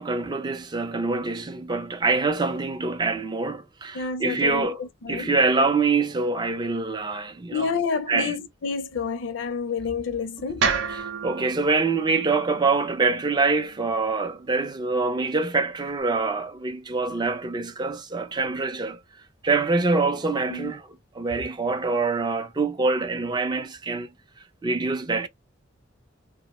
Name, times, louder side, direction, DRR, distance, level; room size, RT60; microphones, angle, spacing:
voice 1, 0.0-4.8 5.1-7.7 8.1-8.3 10.9-19.0 19.4-20.9 21.1-24.1 24.6-25.3, right 3 dB, 20° right, 0.4 m, -25 dB
voice 2, 3.9-5.3 7.5-10.7 20.5-20.7, left 5 dB, 75° left, 0.5 m, -29 dB
sound 1, 10.6-14.8, right 5 dB, 85° right, 0.7 m, -32 dB
2.8 x 2.0 x 2.9 m
head